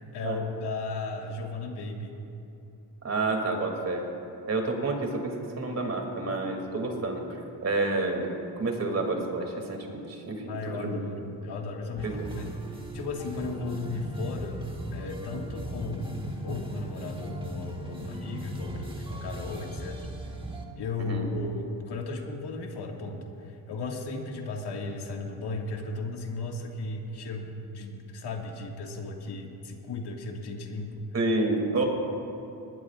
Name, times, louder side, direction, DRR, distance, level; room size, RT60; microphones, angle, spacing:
voice 1, 0.0-2.1 10.5-12.6 12.9-20.1 20.8-31.0, left 3 dB, 70° left, 1 dB, 2.0 m, -35 dB
voice 2, 3.0-4.0 4.5-7.2 7.6-8.3 8.6-10.9 12.0-12.3 21.0-21.3 31.1-31.8, right 3 dB, 40° right, 2 dB, 2.8 m, -29 dB
sound 1, 12.0-20.7, equal, 10° right, 1.6 m, -38 dB
21.0 x 19.5 x 2.5 m, 2.8 s
cardioid pair, 100°, 41 cm